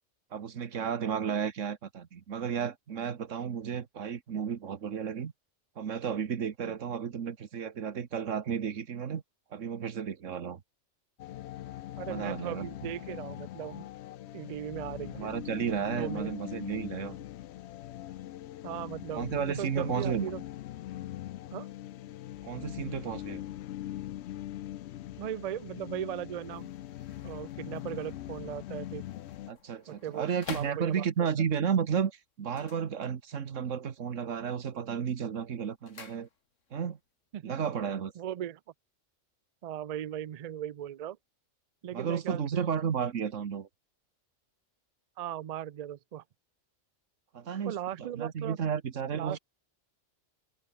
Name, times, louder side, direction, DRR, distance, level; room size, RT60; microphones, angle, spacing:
voice 1, 0.3-5.3 5.8-9.2 9.5-10.6 12.1-12.7 15.1-17.2 19.1-20.3 22.4-23.4 29.5-36.3 36.7-37.0 37.4-38.1 41.9-43.7 47.3-49.4, right 7 dB, 85° right, 1.6 m, -33 dB
sound 1, 11.2-29.5, left 13 dB, 70° left, 0.8 m, -41 dB
voice 2, 12.0-13.9 14.3-15.3 16.0-16.3 18.6-20.4 21.5-21.7 25.2-26.7 27.2-29.0 29.9-31.0 37.3-37.6 38.2-38.6 39.6-41.2 41.8-42.7 45.2-46.2 47.6-48.6 49.1-49.4, right 11 dB, 70° right, 0.3 m, -38 dB
sound 2, 26.4-31.4 32.4-33.6 33.9-34.4 34.7-36.8 37.1-37.2, left 5 dB, 85° left, 2.0 m, -49 dB
omnidirectional pair, 1.3 m